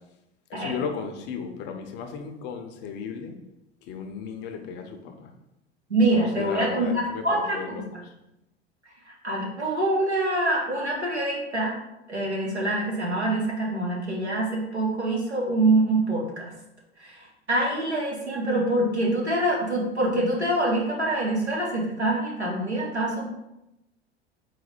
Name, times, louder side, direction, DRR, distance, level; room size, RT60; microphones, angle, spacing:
voice 1, 0.5-3.4 3.9-5.3 6.1-8.1, left 6 dB, 35° left, 5 dB, 0.5 m, -35 dB
voice 2, 5.9-7.8 9.1-11.8 12.1-16.5 17.0-17.2 17.5-23.3, right 1 dB, 90° right, -4 dB, 1.1 m, -25 dB
4.1 x 2.2 x 4.3 m, 0.90 s
figure-of-eight pair, 80°, 33 cm